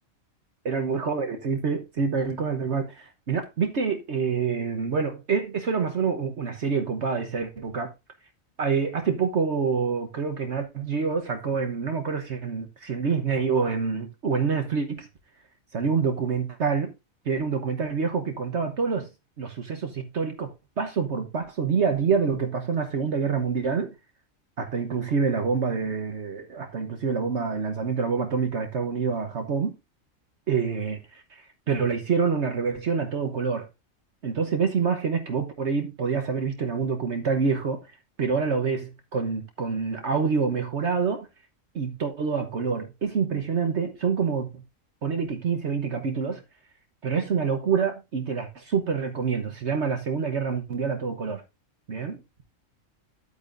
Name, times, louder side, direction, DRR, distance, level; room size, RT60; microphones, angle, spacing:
voice 1, 0.6-7.9 8.6-15.1 15.7-16.9 17.2-19.1 19.4-23.9 24.6-29.7 30.5-33.7 34.2-37.8 38.2-41.3 41.7-44.6 45.0-46.4 47.0-51.4 51.9-52.2, right 5 dB, 60° right, 1.3 m, -27 dB
10.0 x 8.7 x 2.6 m
omnidirectional pair, 1.4 m